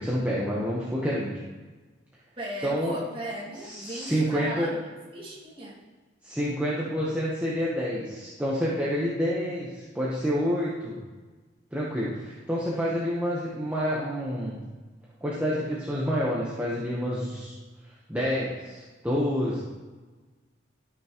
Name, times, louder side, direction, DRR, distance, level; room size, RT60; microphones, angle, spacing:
voice 1, 0.0-1.3 2.6-2.9 3.6-4.7 6.2-11.0 11.7-14.6 15.2-17.5 18.1-19.6, equal, 10° right, -7 dB, 1.0 m, -28 dB
voice 2, 2.4-4.8 5.1-5.8, right 1 dB, 30° right, -7 dB, 2.0 m, -37 dB
13.0 x 5.9 x 3.0 m, 1.3 s
head